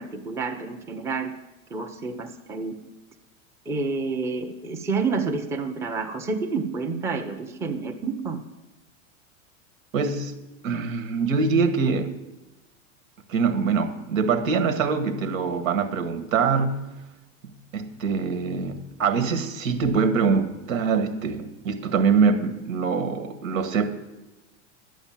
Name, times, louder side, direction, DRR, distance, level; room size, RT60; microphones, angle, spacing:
voice 1, 0.0-1.3 1.7-2.8 3.7-8.4, right 4 dB, 5° right, 3 dB, 0.6 m, -29 dB
voice 2, 9.9-10.3 10.6-12.1 13.3-16.8 17.7-23.9, right 5 dB, 85° right, 10 dB, 1.7 m, -24 dB
11.5 x 8.2 x 7.3 m, 1.1 s
supercardioid pair, 150°, 40 cm